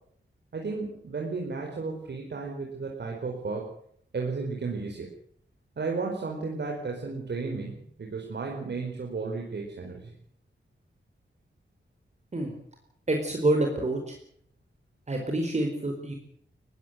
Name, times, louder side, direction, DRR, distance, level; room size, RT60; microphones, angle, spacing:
voice 1, 0.5-3.7 4.1-5.1 5.8-10.1, right 4 dB, 65° right, 1 dB, 4.7 m, -33 dB
voice 2, 13.1-14.1 15.1-16.1, right 1 dB, 35° right, 3 dB, 4.3 m, -27 dB
21.5 x 16.5 x 7.8 m, 0.67 s
wide cardioid pair, 115°, 19 cm